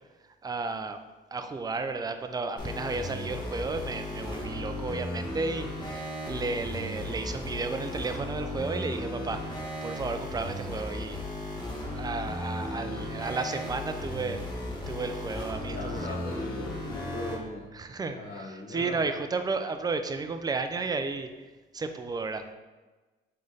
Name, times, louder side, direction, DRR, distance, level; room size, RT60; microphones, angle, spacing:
voice 1, 0.4-1.0 1.3-11.2 11.9-14.4 14.9-16.2 17.7-21.3 21.7-22.4, right 3 dB, 20° right, 8 dB, 0.4 m, -33 dB
sound 1, 2.6-17.4, left 1 dB, 20° left, 1.2 m, -36 dB
voice 2, 15.7-17.7 18.1-19.0, left 2 dB, 50° left, -3 dB, 0.7 m, -39 dB
3.8 x 3.2 x 3.9 m, 1.2 s
cardioid pair, 90°, 20 cm